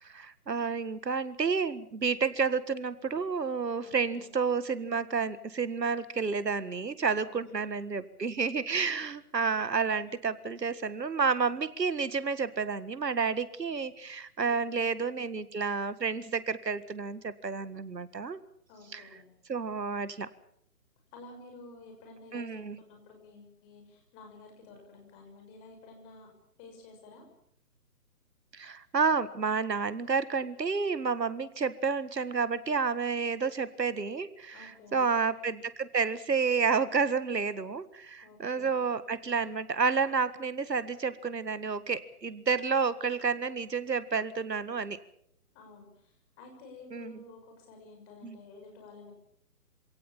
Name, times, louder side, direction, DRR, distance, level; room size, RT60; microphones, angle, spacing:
voice 1, 0.0-18.4 18.9-19.0 19.5-20.3 22.3-22.8 28.5-45.0 46.9-47.2 48.2-48.4, right 5 dB, 85° right, 15 dB, 1.8 m, -30 dB
voice 2, 3.8-4.3 7.2-7.6 14.4-14.9 18.7-19.3 21.1-26.3 26.6-27.2 34.5-35.1 38.2-38.9 45.5-49.1, left 3 dB, 20° left, 3 dB, 6.3 m, -52 dB
27.0 x 18.0 x 7.4 m, 0.71 s
figure-of-eight pair, 150°, 48 cm